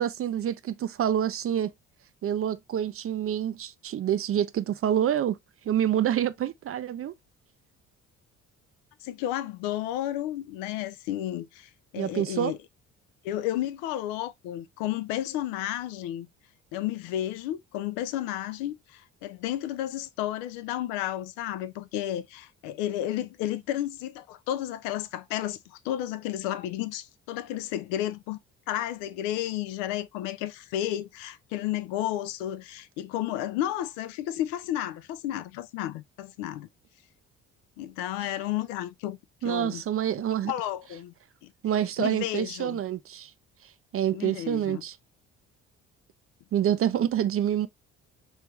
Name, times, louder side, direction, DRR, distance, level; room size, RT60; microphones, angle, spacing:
voice 1, 0.0-1.7 2.2-5.4 5.7-7.1 12.0-12.5 38.2-38.3 39.4-40.5 41.6-43.3 43.9-45.0 46.5-47.7, right 10 dB, 35° right, 0.5 m, -27 dB
voice 2, 9.0-12.6 13.2-16.3 16.7-28.4 28.7-36.7 37.8-39.2 39.4-39.8 40.4-41.1 41.4-41.5 42.0-42.8 44.1-44.8, left 12 dB, 70° left, 0.6 m, -32 dB
3.4 x 3.2 x 3.1 m
hypercardioid pair, 50°, 39 cm